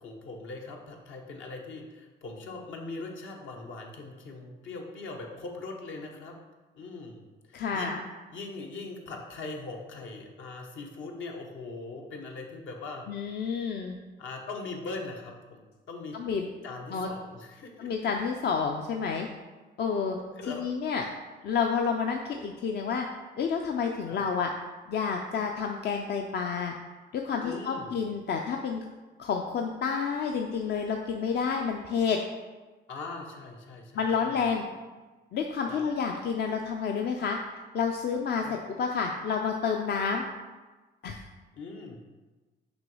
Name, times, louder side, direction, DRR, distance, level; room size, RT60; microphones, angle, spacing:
voice 1, 0.0-6.3 6.7-7.2 7.5-8.0 8.3-13.1 14.2-15.6 15.9-16.2 16.6-17.9 20.4-20.6 24.1-24.2 27.4-27.9 32.9-34.5 35.7-35.8 38.4-38.6 41.6-42.0, left 3 dB, 75° left, 1 dB, 1.0 m, -41 dB
voice 2, 7.5-8.0 13.1-14.0 16.1-16.5 16.9-17.1 17.8-19.3 19.8-20.2 20.5-21.0 21.4-23.0 23.4-24.5 24.9-26.7 27.1-28.8 29.2-32.2 33.9-34.6 35.3-37.4 37.7-40.3 41.0-41.2, left 6 dB, 55° left, 2 dB, 0.5 m, -29 dB
6.1 x 3.0 x 5.4 m, 1.2 s
cardioid pair, 90°, 20 cm